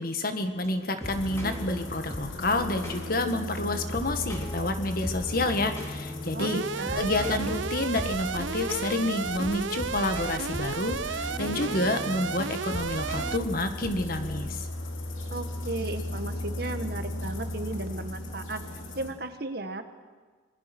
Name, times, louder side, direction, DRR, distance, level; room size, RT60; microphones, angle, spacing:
voice 1, 0.0-6.6 7.0-14.7, left 2 dB, 50° left, 7 dB, 1.7 m, -29 dB
sound 1, 0.6-14.4, equal, 15° left, 4.2 m, -38 dB
sound 2, 1.0-19.1, left 1 dB, 85° left, 3.1 m, -38 dB
voice 2, 6.3-7.1 15.3-18.6 18.9-19.8, right 2 dB, 50° right, 8 dB, 1.6 m, -35 dB
Alarm, 6.4-13.4, right 6 dB, 75° right, 0.6 m, -33 dB
26.0 x 21.0 x 6.1 m, 1.4 s
head